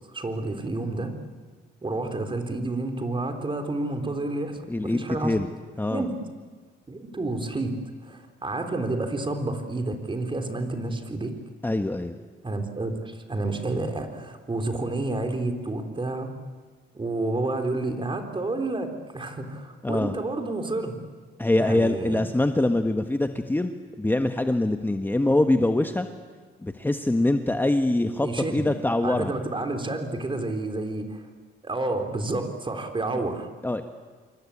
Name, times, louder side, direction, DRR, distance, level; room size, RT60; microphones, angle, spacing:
voice 1, 0.1-1.1 1.8-5.4 5.9-6.1 6.9-7.7 8.0-11.3 12.4-16.3 16.9-21.0 21.6-22.2 28.2-28.7 29.0-31.3 31.6-33.5, right 2 dB, 25° right, 6 dB, 4.0 m, -30 dB
voice 2, 4.7-5.5 5.8-6.1 11.6-12.1 19.8-20.2 21.4-23.7 24.0-26.1 26.6-29.3 33.6-33.8, left 1 dB, 10° left, 7 dB, 1.4 m, -24 dB
27.5 x 23.5 x 8.7 m, 1.5 s
cardioid pair, 90°, 20 cm